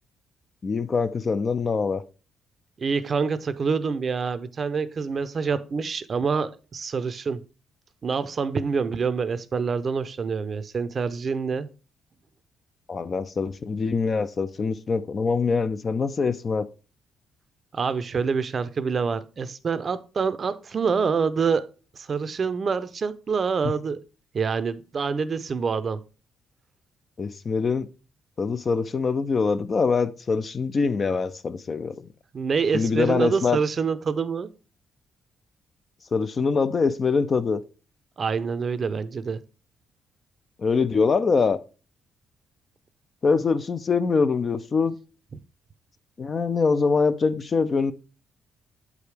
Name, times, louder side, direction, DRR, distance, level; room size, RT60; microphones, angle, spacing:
voice 1, 0.6-2.0 12.9-16.7 23.6-23.7 27.2-27.9 28.4-32.1 32.7-33.6 36.1-37.6 40.6-41.6 43.2-45.0 46.2-47.9, left 5 dB, 40° left, 0.5 m, -24 dB
voice 2, 2.8-7.4 8.0-11.7 17.7-21.7 21.9-24.0 24.3-26.0 32.3-34.5 38.2-39.4, right 5 dB, 45° right, 0.6 m, -26 dB
8.0 x 4.9 x 3.3 m
cardioid pair, 90°, 0 cm